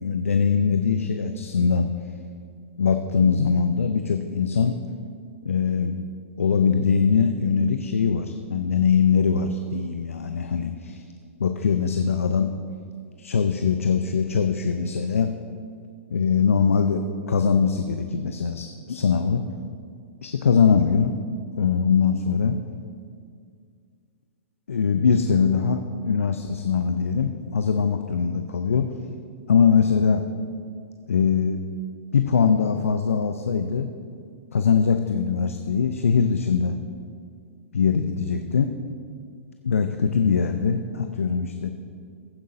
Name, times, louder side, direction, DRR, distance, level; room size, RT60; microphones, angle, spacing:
voice 1, 0.0-1.9 2.8-4.8 5.4-6.0 6.4-11.1 11.4-12.5 13.2-15.3 16.1-19.4 20.2-21.1 21.6-22.6 24.7-28.9 29.5-30.2 31.1-31.6 32.1-33.9 34.5-36.7 37.7-38.7 39.6-41.7, left 6 dB, 80° left, 7 dB, 0.5 m, -22 dB
15.0 x 10.0 x 2.7 m, 2.2 s
figure-of-eight pair, 110°, 7 cm